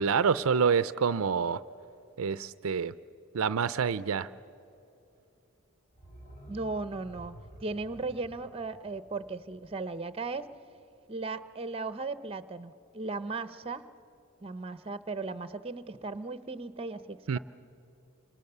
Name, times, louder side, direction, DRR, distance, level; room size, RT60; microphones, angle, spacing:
voice 1, 0.0-1.6 2.2-2.9 3.3-4.3 17.3-17.4, right 6 dB, 75° right, 15 dB, 0.5 m, -27 dB
sound 1, 5.9-10.7 11.0-11.1, right 1 dB, 40° left, 5.3 m, -52 dB
voice 2, 6.5-10.5 11.1-13.8 14.4-17.4, right 3 dB, 25° right, 13 dB, 0.8 m, -37 dB
29.0 x 26.0 x 6.8 m, 2.9 s
head